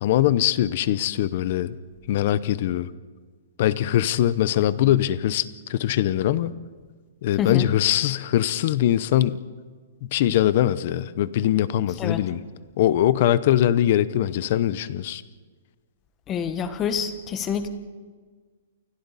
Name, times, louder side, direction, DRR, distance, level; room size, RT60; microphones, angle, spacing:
voice 1, 0.0-1.7 2.1-2.9 3.6-6.5 7.2-9.4 10.1-12.4 12.8-15.2, left 12 dB, 40° left, 16 dB, 0.7 m, -22 dB
voice 2, 7.4-7.7 12.0-12.2 16.3-17.7, left 7 dB, 15° left, 10 dB, 1.2 m, -27 dB
28.5 x 28.5 x 4.1 m, 1.5 s
hypercardioid pair, 175°, 0 cm